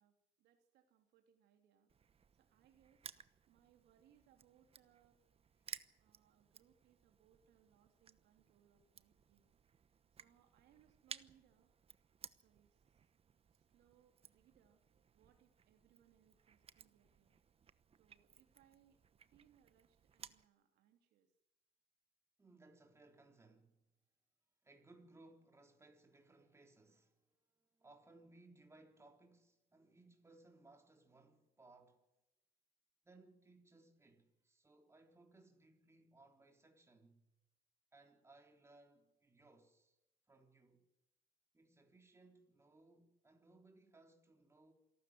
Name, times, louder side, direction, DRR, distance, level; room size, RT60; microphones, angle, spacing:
voice 1, 0.0-1.9 2.3-3.0 3.5-5.2 6.0-9.5 10.2-11.7 12.4-13.0 13.5-14.8 15.1-17.4 18.0-19.0 19.3-21.3, right 9 dB, 80° right, 3.0 m, -72 dB
Crushing, 1.9-20.5, right 7 dB, 35° right, 1.0 m, -59 dB
voice 2, 22.4-23.9 24.6-32.0 33.0-37.2 37.9-40.0 40.3-40.9 41.5-44.7, right 2 dB, 15° right, 3.7 m, -65 dB
27.0 x 12.5 x 9.5 m
cardioid pair, 110°, 17 cm